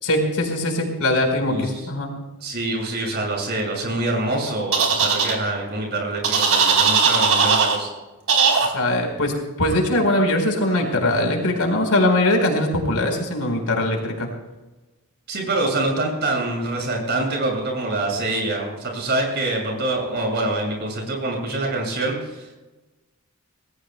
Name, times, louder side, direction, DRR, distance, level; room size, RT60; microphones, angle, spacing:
voice 1, 0.0-2.1 8.7-9.3 9.6-14.3, left 1 dB, 85° left, 2 dB, 4.3 m, -21 dB
voice 2, 1.5-1.9 2.4-7.9 15.3-22.6, right 2 dB, 50° right, 0 dB, 6.4 m, -25 dB
sound 1, 4.7-5.3 6.2-7.8 8.3-8.7, right 5 dB, 65° right, 3.7 m, -18 dB
27.0 x 19.0 x 2.3 m, 1.1 s
head